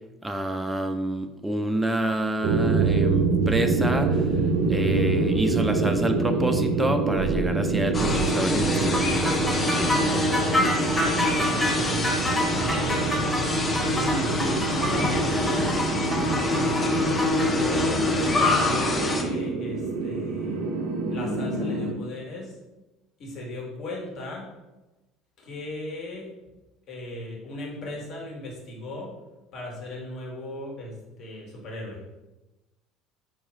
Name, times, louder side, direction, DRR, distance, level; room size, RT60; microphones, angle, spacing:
voice 1, 0.2-4.2 4.7-10.1, right 1 dB, 10° right, 5 dB, 0.3 m, -28 dB
sound 1, 2.4-21.9, right 4 dB, 70° right, 0.5 m, -26 dB
sound 2, 7.9-19.2, left 2 dB, 30° left, 0.6 m, -26 dB
sound 3, 8.9-17.5, left 1 dB, 10° left, 0.9 m, -28 dB
voice 2, 11.1-13.4 13.7-14.4 14.7-15.9 16.4-20.6 21.1-22.6 23.2-24.5 25.4-26.3 26.9-29.1 29.5-32.0, left 1 dB, 55° left, -2 dB, 1.2 m, -37 dB
4.7 x 2.3 x 3.0 m, 1.0 s
hypercardioid pair, 80°, 0 cm